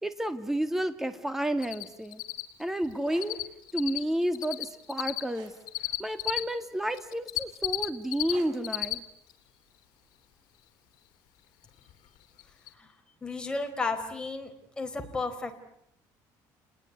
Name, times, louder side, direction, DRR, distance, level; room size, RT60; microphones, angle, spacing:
voice 1, 0.0-2.2 2.6-3.4 3.7-5.5 6.0-9.0, right 1 dB, 5° right, 10 dB, 2.1 m, -31 dB
Cricket, 1.6-1.8 2.1-6.4 6.9-8.3 8.6-8.9 9.3-9.4 11.9-12.0 12.4-12.5 12.7-12.8, left 18 dB, 70° left, 3.3 m, -31 dB
sound 1, 2.9-3.3 5.3-5.6 6.9-7.3 8.3-8.6 10.0-10.2, right 8 dB, 65° right, 6.1 m, -50 dB
voice 2, 13.2-14.5 14.8-15.5, left 3 dB, 10° left, 5 dB, 4.1 m, -33 dB
30.0 x 20.5 x 9.5 m, 0.76 s
cardioid pair, 135°, 7 cm